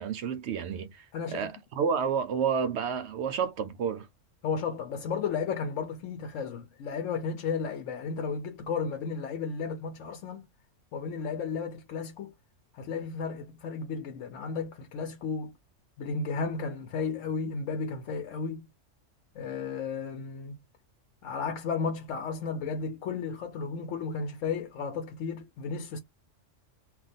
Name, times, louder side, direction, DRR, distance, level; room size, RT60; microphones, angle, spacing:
voice 1, 0.0-1.1 1.3-4.1, right 6 dB, 70° right, 0.8 m, -30 dB
voice 2, 1.1-1.5 4.4-10.4 10.9-12.3 12.7-15.5 16.0-18.7 19.4-20.5 21.2-26.0, left 5 dB, 80° left, 0.9 m, -33 dB
2.4 x 2.2 x 4.0 m
omnidirectional pair, 1.3 m